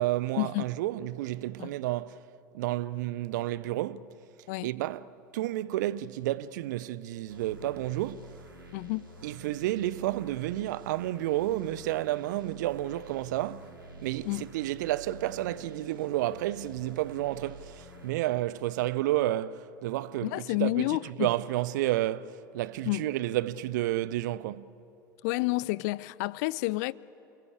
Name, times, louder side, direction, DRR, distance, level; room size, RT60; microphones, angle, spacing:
voice 1, 0.0-2.2 2.5-4.1 4.6-8.4 9.2-13.7 14.0-24.7, right 15 dB, 60° right, 0.6 m, -31 dB
sound 1, 7.3-18.1, right 1 dB, 85° right, 2.4 m, -49 dB
voice 2, 8.7-9.1 14.3-14.4 20.2-21.3 22.9-23.1 25.2-26.9, left 22 dB, 55° left, 0.5 m, -29 dB
28.5 x 18.5 x 8.5 m
figure-of-eight pair, 75°, 11 cm